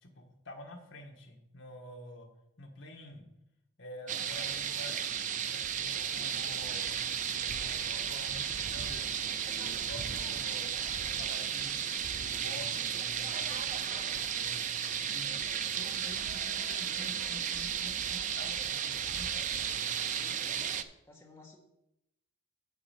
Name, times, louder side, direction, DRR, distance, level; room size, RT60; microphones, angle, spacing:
voice 1, 0.0-2.3 2.6-3.2 3.8-5.1 5.5-7.1 7.4-9.1 9.6-14.6 15.0-15.4 15.7-19.5, left 1 dB, 60° left, 3 dB, 1.3 m, -48 dB
sound 1, 4.1-20.8, right 8 dB, 35° right, 0.4 m, -34 dB
voice 2, 20.1-21.6, left 2 dB, 10° left, -1 dB, 1.2 m, -55 dB
7.2 x 6.7 x 5.7 m, 0.85 s
head